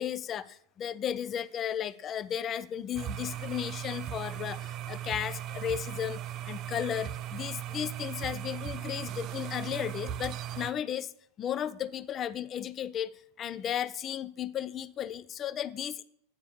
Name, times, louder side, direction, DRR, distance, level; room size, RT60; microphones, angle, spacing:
voice 1, 0.0-11.1 11.4-16.0, left 9 dB, 30° left, 16 dB, 0.4 m, -35 dB
sound 1, 3.0-10.7, right 11 dB, 40° right, 0.4 m, -38 dB
8.7 x 4.8 x 5.7 m, 0.69 s
figure-of-eight pair, 85°, 0 cm